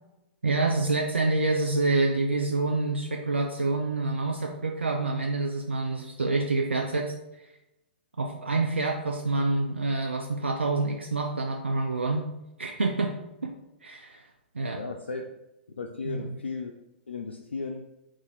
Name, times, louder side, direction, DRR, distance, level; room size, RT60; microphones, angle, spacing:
voice 1, 0.4-7.1 8.2-12.3 12.6-13.2 13.4-13.5 13.8-14.2 14.6-14.8 16.0-16.3, right 3 dB, 85° right, 2 dB, 0.4 m, -27 dB
voice 2, 14.7-15.3 15.8-16.7 17.1-17.9, left 4 dB, 80° left, 3 dB, 0.3 m, -35 dB
4.0 x 2.5 x 3.9 m, 0.92 s
figure-of-eight pair, 110°, 6 cm